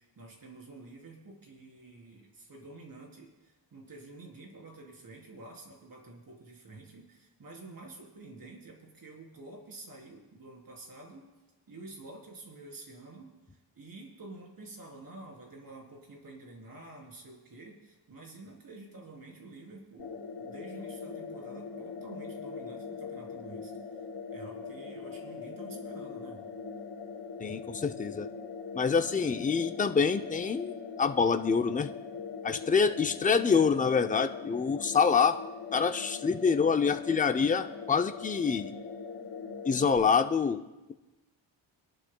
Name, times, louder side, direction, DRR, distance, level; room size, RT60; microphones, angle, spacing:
voice 1, 0.0-11.3 11.7-13.3 13.8-23.7 24.3-26.4, right 2 dB, 50° right, -1 dB, 3.6 m, -49 dB
sound 1, 20.0-40.0, left 5 dB, 60° left, 3.0 m, -41 dB
voice 2, 27.4-28.3 28.7-30.7 31.0-31.9 32.4-35.4 35.7-38.7 39.6-40.6, left 5 dB, 20° left, 7 dB, 0.5 m, -26 dB
25.5 x 12.0 x 2.3 m, 1.1 s
wide cardioid pair, 115°, 45 cm